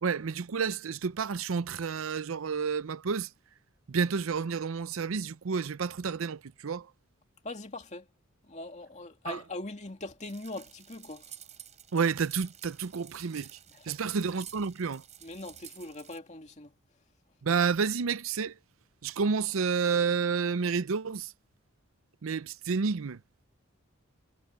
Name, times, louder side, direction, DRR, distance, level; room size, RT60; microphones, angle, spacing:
voice 1, 0.0-3.3 3.9-6.9 9.3-9.4 11.9-13.6 13.8-15.0 17.4-18.6 19.0-21.3 22.2-23.2, right 5 dB, 80° right, 0.6 m, -30 dB
voice 2, 7.4-8.1 8.5-11.2 13.9-14.0 15.2-16.7, left 2 dB, 35° left, 2.4 m, -41 dB
sound 1, 10.2-16.2, right 10 dB, 35° right, 4.8 m, -51 dB
head